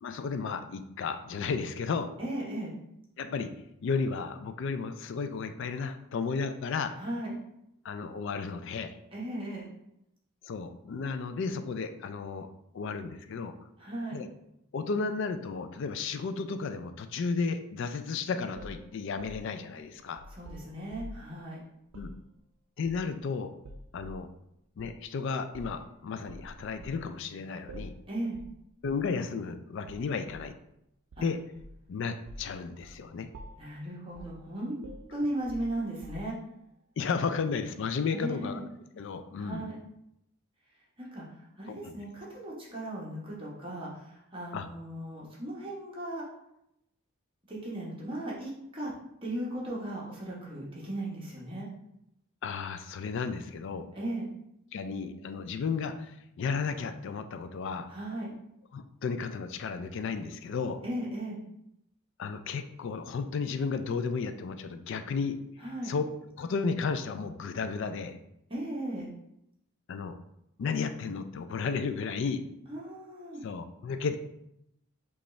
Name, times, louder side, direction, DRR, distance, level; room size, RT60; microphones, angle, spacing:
voice 1, 0.0-2.1 3.2-3.5 3.8-6.9 7.8-9.0 10.4-13.5 14.1-14.3 14.7-20.2 21.9-22.1 22.8-23.5 23.9-24.3 24.8-27.9 28.8-30.5 31.2-31.4 31.9-33.3 37.0-38.6 39.0-39.7 41.7-42.0 44.5-44.7 52.4-53.9 54.7-57.9 58.7-60.8 62.2-65.4 65.8-66.1 66.4-68.2 69.9-70.2 70.6-72.4 73.4-74.2, left 5 dB, 55° left, 9 dB, 0.3 m, -33 dB
voice 2, 2.2-2.7 7.0-7.3 9.1-9.7 13.8-14.2 20.3-21.6 28.1-28.4 31.2-31.3 33.6-34.8 35.1-36.3 38.1-38.6 39.4-39.8 41.0-46.3 47.5-48.9 49.2-51.7 53.9-54.3 57.9-58.3 60.8-61.4 65.6-65.9 68.5-69.1 72.7-73.4, right 1 dB, 25° right, -5 dB, 1.0 m, -36 dB
sound 1, 18.5-21.3 21.9-22.2 22.8-23.3 23.6-24.2 24.8-25.0 25.5-25.9 26.3-27.1 27.7-28.0 28.3-28.6 28.8-29.1 29.9-30.5 31.1-31.9 32.2-32.5 32.8-33.0 33.3-33.7 34.1-34.4 34.8-36.5, equal, 85° right, 0.4 m, -47 dB
5.0 x 2.4 x 3.1 m, 0.80 s
head